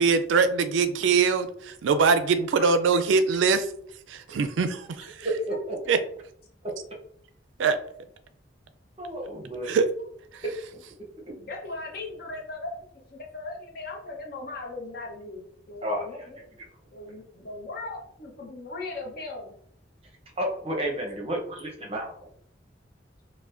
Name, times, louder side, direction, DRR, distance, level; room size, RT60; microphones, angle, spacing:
voice 1, 0.0-3.7 4.1-5.3 5.9-6.0 7.6-7.8 9.7-9.9 10.3-10.4, right 5 dB, 80° right, 10 dB, 0.3 m, -23 dB
voice 2, 5.2-5.8 9.0-9.9 15.8-16.3 17.1-17.2 20.4-22.3, right 1 dB, 30° right, 0 dB, 0.7 m, -31 dB
voice 3, 11.4-16.4 16.9-19.5, left 3 dB, 55° left, 0 dB, 0.8 m, -38 dB
4.6 x 2.1 x 2.5 m, 0.65 s
head